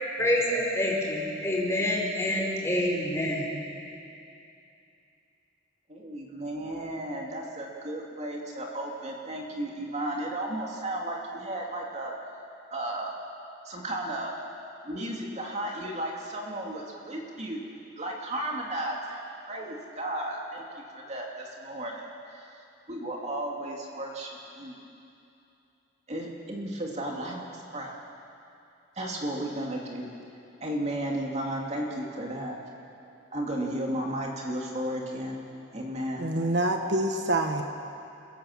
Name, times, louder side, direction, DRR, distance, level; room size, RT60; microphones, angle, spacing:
voice 1, 0.2-3.6, left 1 dB, 15° left, -3 dB, 4.9 m, -27 dB
voice 2, 5.9-12.1 12.7-13.1 13.6-14.3 14.8-17.6 18.0-22.6 22.9-24.8 26.1-27.9 29.0-30.1 30.6-32.6 33.3-35.4 35.7-36.3, right 1 dB, 35° right, -1 dB, 2.6 m, -34 dB
voice 3, 36.2-37.6, right 1 dB, 65° right, 4 dB, 1.4 m, -26 dB
29.5 x 16.5 x 7.4 m, 2.7 s
head